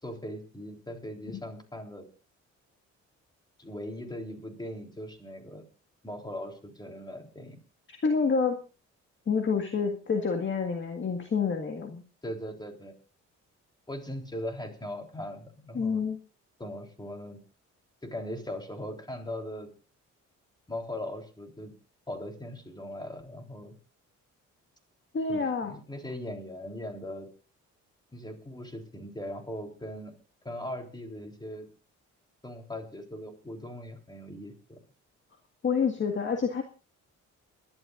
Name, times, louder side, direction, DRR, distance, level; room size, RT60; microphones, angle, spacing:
voice 1, 0.0-2.1 3.6-5.6 6.0-7.6 12.2-12.9 13.9-16.0 16.6-17.4 18.0-19.7 20.7-21.7 22.1-23.8 25.3-27.3 28.1-30.1 30.4-31.7 32.4-34.8, left 1 dB, 15° left, 4 dB, 3.7 m, -39 dB
voice 2, 7.9-8.6 9.3-12.0 15.7-16.2 25.1-25.7 35.6-36.6, left 5 dB, 40° left, 4 dB, 1.9 m, -28 dB
29.5 x 11.5 x 2.6 m, 0.34 s
cardioid pair, 90°, 30 cm